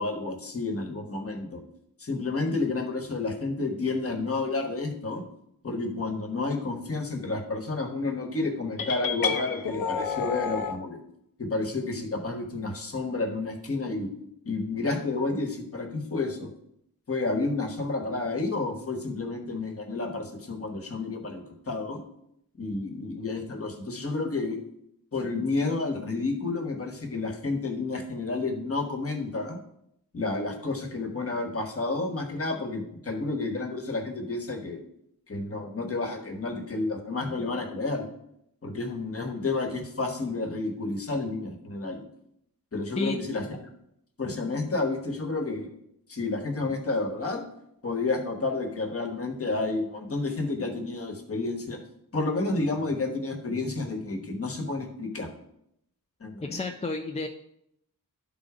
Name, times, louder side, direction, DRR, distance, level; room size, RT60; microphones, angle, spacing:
voice 1, 0.0-1.6 2.0-5.2 5.6-11.0 11.4-14.1 14.4-16.5 17.1-22.0 22.6-24.6 25.1-29.6 30.1-34.8 35.3-38.1 38.6-42.0 42.7-43.4 44.2-45.7 46.1-47.4 47.8-51.8 52.1-55.3 56.2-56.6, left 3 dB, 40° left, 4 dB, 1.2 m, -30 dB
sound 1, 8.8-10.8, left 6 dB, 70° left, 0.7 m, -30 dB
voice 2, 56.4-57.3, left 2 dB, 20° left, 3 dB, 0.4 m, -30 dB
11.0 x 3.8 x 4.8 m, 0.76 s
wide cardioid pair, 160°, 36 cm